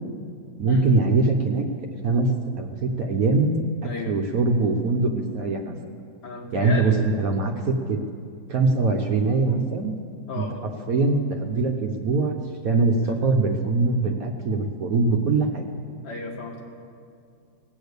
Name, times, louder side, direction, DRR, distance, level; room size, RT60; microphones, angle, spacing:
voice 1, 0.6-1.6 2.0-2.3 2.6-3.6 3.8-5.7 6.5-8.0 8.5-9.9 10.4-10.5 10.9-12.4 12.6-15.6, right 3 dB, 60° right, 3 dB, 1.3 m, -22 dB
voice 2, 3.8-4.1 6.2-7.0 10.3-10.6 13.0-13.1 16.0-16.6, left 3 dB, 75° left, 1 dB, 2.2 m, -33 dB
18.5 x 6.9 x 8.1 m, 2.3 s
omnidirectional pair, 1.8 m